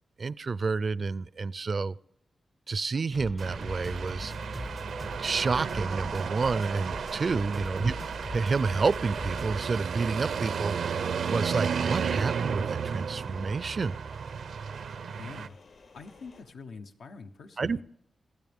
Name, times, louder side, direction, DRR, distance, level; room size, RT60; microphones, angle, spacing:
voice 1, 0.2-1.9 2.7-4.7 5.2-7.9 8.3-13.9 17.6-17.8, right 4 dB, 45° right, 19 dB, 0.4 m, -29 dB
sound 1, 3.1-9.6, left 1 dB, 10° left, 0.5 m, -41 dB
sound 2, 3.4-15.5, right 6 dB, 85° right, 0.7 m, -33 dB
voice 2, 7.6-8.0 15.2-15.6 15.9-17.8, left 4 dB, 90° left, 4 dB, 1.1 m, -45 dB
sound 3, 10.4-16.4, left 4 dB, 60° left, 4.5 m, -55 dB
28.5 x 9.8 x 3.6 m, 0.76 s
wide cardioid pair, 110°, 0 cm